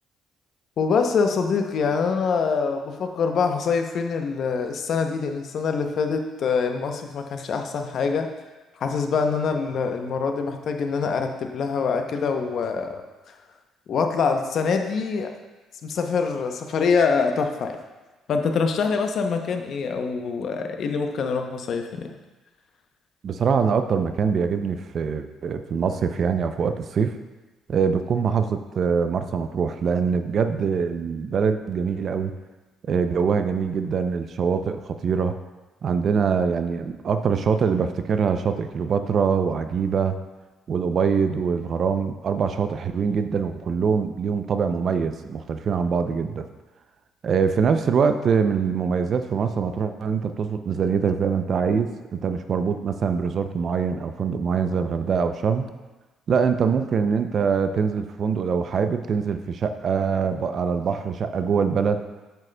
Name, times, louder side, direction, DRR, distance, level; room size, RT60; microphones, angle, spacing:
voice 1, 0.8-8.3 8.8-13.0 13.9-15.3 15.8-17.8 18.3-22.1, left 5 dB, 50° left, 5 dB, 0.6 m, -24 dB
voice 2, 23.2-27.1 27.7-32.3 32.9-35.3 35.8-40.2 40.7-46.5 47.2-55.7 56.3-62.0, right 6 dB, 45° right, 9 dB, 0.4 m, -23 dB
7.8 x 7.5 x 2.2 m, 1.2 s
cardioid pair, 135°, 0 cm